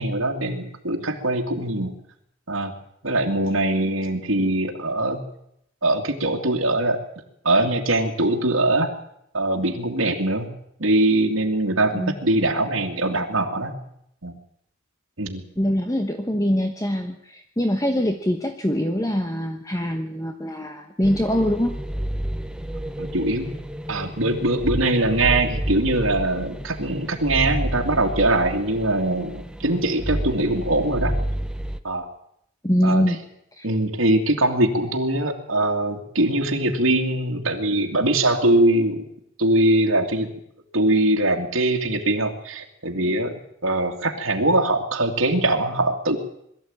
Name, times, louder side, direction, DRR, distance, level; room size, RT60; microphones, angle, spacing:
voice 1, 0.0-2.0 2.5-2.7 3.0-5.3 5.8-7.0 7.4-8.9 9.3-10.5 10.8-13.8 14.2-14.3 15.2-15.4 23.0-23.5 23.9-31.3 31.8-32.1 32.8-33.0 33.6-39.0 39.4-40.3 40.7-43.3 43.6-46.2, right 1 dB, 75° right, 1 dB, 2.4 m, -22 dB
voice 2, 15.6-21.8 32.6-33.2 33.6-33.7, equal, 15° left, 6 dB, 1.1 m, -23 dB
sound 1, 21.0-31.8, equal, 5° right, 0.8 m, -30 dB
22.0 x 13.5 x 8.9 m, 0.74 s
head